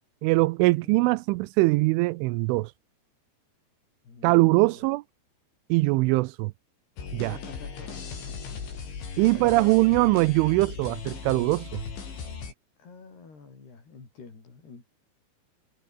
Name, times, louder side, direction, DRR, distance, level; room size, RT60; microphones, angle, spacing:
voice 1, 0.2-2.7 4.2-5.0 5.7-6.5 7.1-7.4 9.2-11.8, right 22 dB, 85° right, 3.0 m, -22 dB
voice 2, 4.0-4.8 7.2-8.0 9.2-9.9 12.8-14.9, left 4 dB, 55° left, 8.9 m, -48 dB
sound 1, 7.0-12.5, left 5 dB, 70° left, 8.5 m, -38 dB
omnidirectional pair, 5.6 m